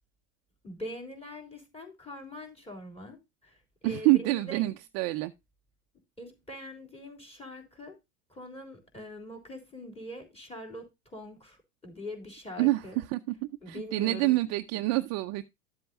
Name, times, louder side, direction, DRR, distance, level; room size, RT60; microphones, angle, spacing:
voice 1, 0.6-4.6 6.2-8.0 8.3-13.0 13.6-14.4, left 1 dB, 15° left, 3.5 m, -43 dB
voice 2, 3.8-5.3 12.6-12.8 13.1-13.3 13.7-15.4, right 19 dB, 35° right, 0.5 m, -26 dB
12.5 x 7.7 x 2.6 m
hypercardioid pair, 105°, 46 cm